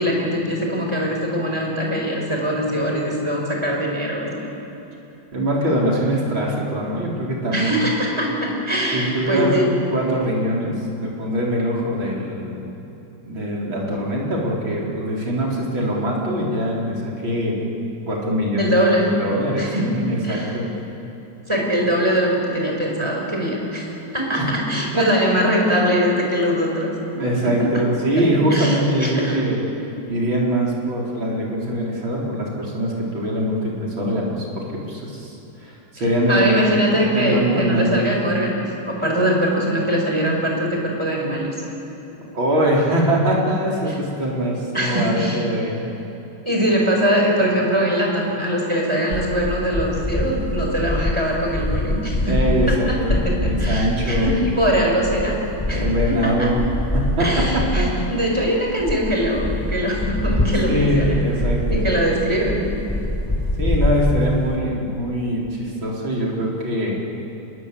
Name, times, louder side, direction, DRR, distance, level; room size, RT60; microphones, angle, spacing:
voice 1, 0.0-4.5 7.5-9.8 18.6-19.2 19.6-20.6 21.5-26.9 27.4-27.8 28.2-29.4 36.3-41.6 43.9-44.0 44.7-45.5 46.5-52.4 52.7-55.4 55.7-56.5 57.2-61.2 61.7-62.7, equal, 10° right, -1 dB, 5.2 m, -22 dB
voice 2, 5.3-7.9 8.9-9.6 9.9-12.6 13.2-17.6 18.1-18.8 19.0-20.7 24.4-24.5 25.0-25.1 27.1-29.6 30.1-35.3 35.6-38.1 42.3-45.8 52.2-54.5 55.7-56.6 56.9-57.4 57.7-57.9 60.7-61.9 63.6-67.0, equal, 65° right, -4 dB, 5.1 m, -22 dB
sound 1, 49.1-58.0 58.4-64.6, left 1 dB, 15° left, 0.7 m, -24 dB
27.0 x 21.5 x 8.4 m, 3.0 s
omnidirectional pair, 2.3 m